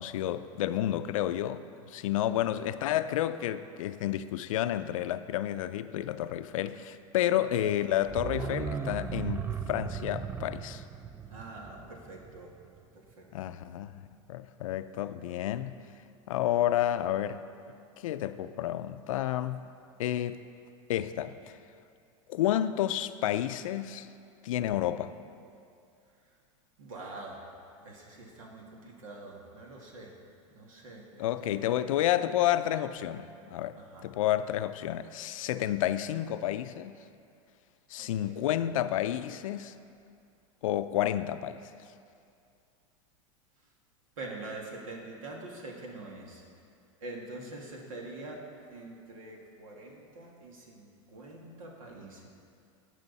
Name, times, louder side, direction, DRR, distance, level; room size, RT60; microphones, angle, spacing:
voice 1, 0.0-1.6 1.9-10.8 13.3-15.8 16.3-17.4 18.0-19.7 20.0-20.4 20.9-21.6 22.3-24.1 24.4-25.1 31.2-36.9 37.9-39.7 40.6-41.6, left 12 dB, 80° left, 12 dB, 0.5 m, -30 dB
sound 1, 8.0-12.8 13.1-13.2, right 6 dB, 15° right, 0.5 m, -37 dB
voice 2, 11.3-12.5 13.2-13.3 26.8-27.4 27.8-30.1 30.5-31.7 33.7-34.0 38.0-38.4 44.2-46.4 47.0-48.4 48.7-52.3, right 2 dB, 85° right, -1 dB, 2.3 m, -45 dB
18.0 x 6.4 x 4.1 m, 2.4 s
hypercardioid pair, 110°, 17 cm